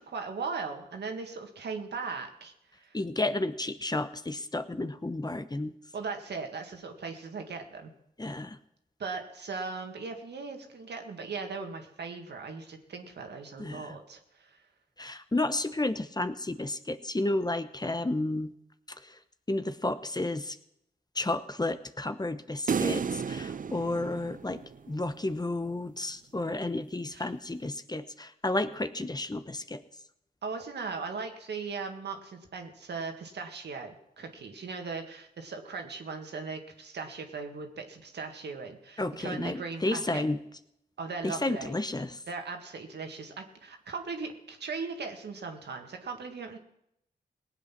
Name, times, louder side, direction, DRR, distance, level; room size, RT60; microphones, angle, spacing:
voice 1, 0.0-2.5 2.8-3.0 5.9-7.9 9.0-14.6 27.1-27.3 30.4-40.2 41.0-41.8 42.3-46.6, right 4 dB, 75° right, 4 dB, 1.9 m, -38 dB
voice 2, 2.9-5.7 8.2-8.6 13.6-14.0 15.0-18.5 19.0-19.2 19.5-20.6 21.1-24.6 24.9-29.8 39.0-40.4 41.2-42.2, left 2 dB, 25° left, 11 dB, 1.0 m, -32 dB
sound 1, 22.7-25.1, right 6 dB, 50° right, 0.6 m, -32 dB
18.5 x 8.3 x 6.0 m, 0.78 s
supercardioid pair, 45°, 18 cm